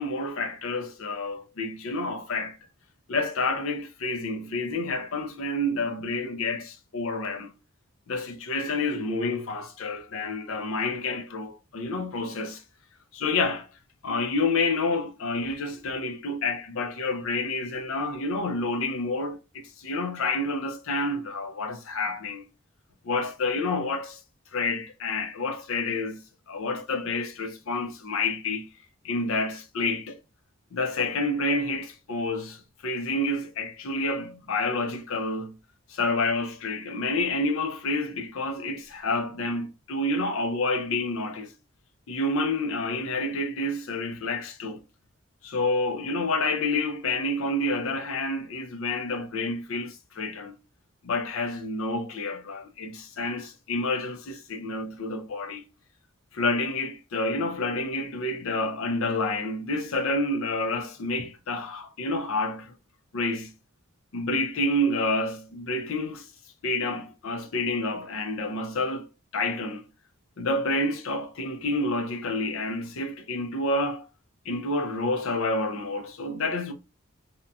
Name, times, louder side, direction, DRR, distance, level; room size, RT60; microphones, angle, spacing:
voice 1, 0.0-2.6 3.1-7.5 8.1-12.6 13.1-13.7 14.0-22.4 23.0-24.2 24.5-28.7 29.0-30.2 30.7-35.6 35.9-41.5 42.1-44.8 45.4-50.6 51.0-55.6 56.3-62.7 63.1-63.5 64.1-66.3 66.6-69.1 69.3-69.9 70.4-74.1 74.5-76.7, left 2 dB, 70° left, 0.5 m, -29 dB
2.8 x 2.2 x 2.6 m
head